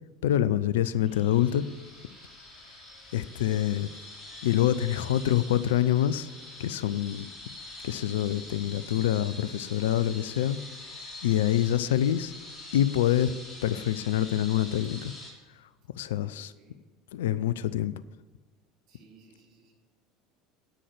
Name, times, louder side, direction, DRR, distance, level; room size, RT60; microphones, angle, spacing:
voice 1, 0.2-1.7 3.1-3.9 4.4-6.3 6.6-7.3 7.8-10.6 11.2-12.3 12.7-15.1 16.0-16.5 17.1-17.9, left 11 dB, 70° left, 16 dB, 0.5 m, -26 dB
sound 1, 1.0-15.3, left 2 dB, 25° left, 3.6 m, -45 dB
voice 2, 16.0-16.8 18.9-19.7, right 4 dB, 50° right, -1 dB, 3.4 m, -59 dB
9.9 x 9.3 x 5.9 m, 1.3 s
figure-of-eight pair, 70°, 0 cm